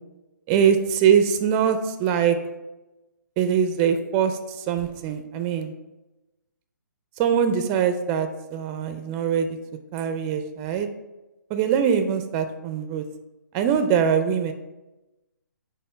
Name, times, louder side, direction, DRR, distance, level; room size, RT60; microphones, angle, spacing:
voice 1, 0.5-2.4 3.4-5.7 7.2-9.6 9.9-10.9 11.5-13.0 13.5-14.5, right 8 dB, 20° right, 9 dB, 0.4 m, -22 dB
5.0 x 4.3 x 5.5 m, 1.0 s
figure-of-eight pair, 140°, 10 cm